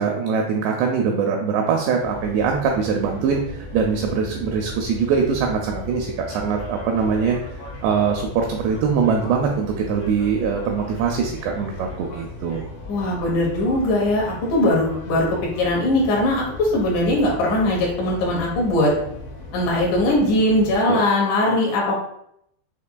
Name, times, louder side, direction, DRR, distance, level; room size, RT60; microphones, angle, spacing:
voice 1, 0.0-7.4 7.8-12.7 20.9-21.0, right 6 dB, 85° right, 1 dB, 2.4 m, -22 dB
sound 1, 2.0-20.8, left 2 dB, 65° left, 2.0 m, -37 dB
voice 2, 12.9-18.9 19.5-22.0, left 1 dB, 90° left, -3 dB, 1.7 m, -20 dB
6.6 x 2.8 x 2.2 m, 0.73 s
omnidirectional pair, 5.3 m